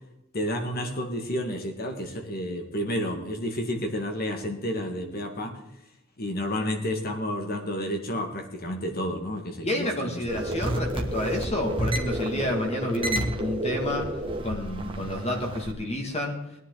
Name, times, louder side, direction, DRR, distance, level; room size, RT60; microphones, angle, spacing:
voice 1, 0.3-5.6 6.2-10.4, equal, 50° left, 4 dB, 2.0 m, -31 dB
voice 2, 9.6-14.1 14.4-16.4, left 1 dB, 30° left, 2 dB, 2.1 m, -29 dB
sound 1, 10.3-15.7, right 1 dB, 25° right, 1.5 m, -30 dB
19.5 x 10.5 x 4.0 m, 0.85 s
head